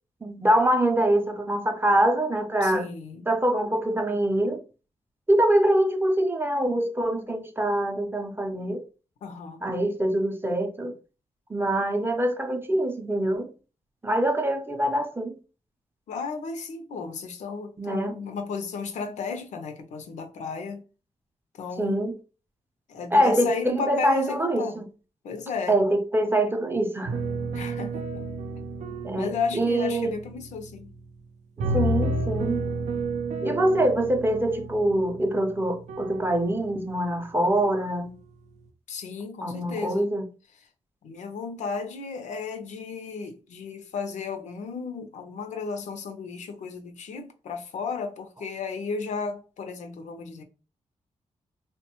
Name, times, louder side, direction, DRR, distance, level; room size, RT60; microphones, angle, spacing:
voice 1, 0.2-2.9 3.3-4.6 5.3-8.8 9.6-10.9 11.5-13.5 14.0-15.4 17.8-18.2 21.8-22.2 23.1-24.9 25.7-27.1 29.0-30.1 31.6-32.6 33.4-38.1 39.4-40.2, right 1 dB, 20° right, 0.5 m, -24 dB
voice 2, 2.6-3.3 9.2-9.7 16.1-20.8 21.5-22.0 22.9-24.8 25.2-25.8 27.5-28.3 29.1-30.9 38.9-40.2 41.0-50.4, left 5 dB, 85° left, 0.5 m, -34 dB
sound 1, 27.1-31.1 31.6-37.1 37.5-38.0, right 2 dB, 75° right, 0.4 m, -32 dB
3.0 x 2.1 x 2.9 m
cardioid pair, 90°, 12 cm